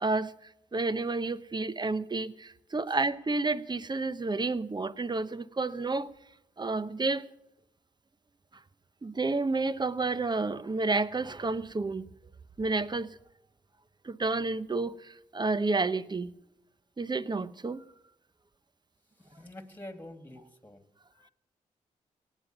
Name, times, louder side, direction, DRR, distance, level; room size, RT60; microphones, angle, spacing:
voice 1, 0.7-2.3 2.7-6.1 6.6-7.2 9.0-12.0 12.6-13.1 14.1-14.9 15.3-16.3 17.0-17.8, right 3 dB, 30° right, 0.9 m, -30 dB
voice 2, 19.2-20.8 21.1-21.3, left 1 dB, 15° left, 2.6 m, -47 dB
18.0 x 8.2 x 6.7 m
supercardioid pair, 45°, 14 cm